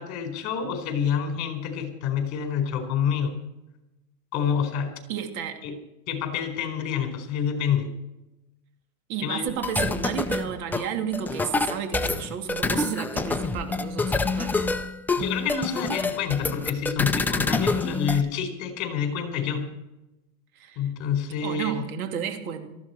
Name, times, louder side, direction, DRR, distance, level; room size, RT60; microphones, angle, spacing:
voice 1, 0.0-3.3 4.3-4.9 5.6-5.7 6.1-7.9 9.2-9.5 15.2-19.7 20.8-21.8, left 7 dB, 40° left, 5 dB, 4.3 m, -27 dB
voice 2, 5.1-5.6 9.1-14.6 20.6-20.8 21.4-22.7, right 8 dB, 70° right, 5 dB, 2.9 m, -32 dB
sound 1, 9.5-18.2, left 3 dB, 5° left, 0.4 m, -27 dB
18.5 x 14.0 x 4.5 m, 0.96 s
supercardioid pair, 135°, 44 cm